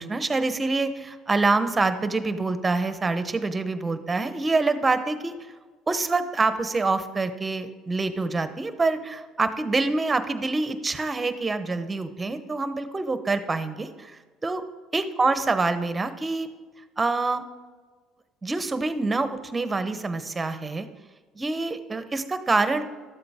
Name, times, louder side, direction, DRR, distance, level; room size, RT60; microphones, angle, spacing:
voice 1, 0.0-5.3 5.9-14.1 14.4-14.6 14.9-16.5 17.0-17.4 18.4-20.9 21.3-22.8, right 3 dB, 20° right, 10 dB, 0.9 m, -26 dB
12.5 x 7.7 x 3.6 m, 1.4 s
supercardioid pair, 85°, 0 cm